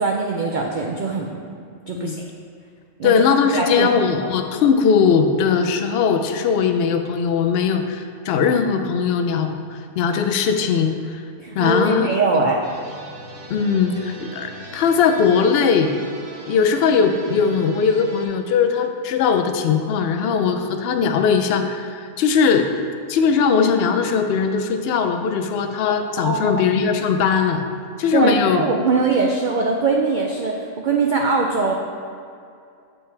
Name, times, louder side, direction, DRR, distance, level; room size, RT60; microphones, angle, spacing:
voice 1, 0.0-1.4 1.9-2.2 3.0-3.1 3.5-3.9 11.4-12.7 26.2-26.6 28.1-31.7, right 3 dB, 90° right, 0 dB, 0.4 m, -21 dB
voice 2, 3.0-11.2 11.5-12.4 13.5-15.9 16.5-22.7 23.1-27.6 28.0-28.6, left 6 dB, 65° left, 6 dB, 0.6 m, -19 dB
sound 1, 12.6-18.3, right 1 dB, 65° right, 1.3 m, -39 dB
6.9 x 5.6 x 3.3 m, 2.4 s
omnidirectional pair, 1.5 m